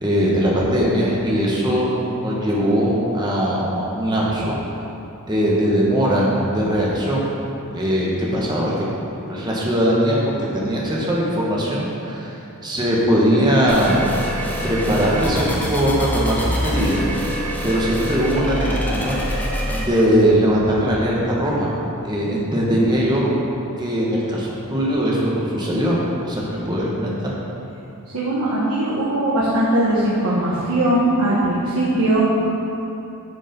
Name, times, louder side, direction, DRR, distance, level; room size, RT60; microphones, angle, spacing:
voice 1, 0.0-1.9 2.2-4.6 5.3-7.3 7.7-8.9 9.3-10.2 10.5-12.3 12.6-14.0 14.6-17.0 17.6-19.2 19.7-21.7 22.0-23.3 23.8-25.9 26.2-27.3, equal, 20° right, -5 dB, 1.4 m, -20 dB
sound 1, 13.7-19.9, equal, 10° left, 0.9 m, -25 dB
voice 2, 28.1-32.2, right 1 dB, 80° right, -7 dB, 1.3 m, -20 dB
9.2 x 5.3 x 5.3 m, 2.9 s
head